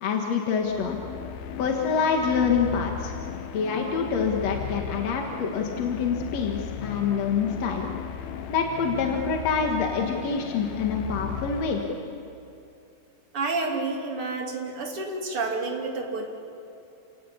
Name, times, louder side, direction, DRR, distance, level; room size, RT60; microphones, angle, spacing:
voice 1, 0.0-1.0 1.6-3.2 3.5-7.9 8.5-11.8, left 6 dB, 50° left, 1 dB, 2.2 m, -26 dB
sound 1, 0.6-12.3, left 7 dB, 75° left, 3.0 m, -36 dB
voice 2, 13.3-16.3, right 3 dB, 35° right, 1 dB, 3.2 m, -29 dB
29.5 x 18.5 x 8.5 m, 2.6 s
omnidirectional pair, 4.8 m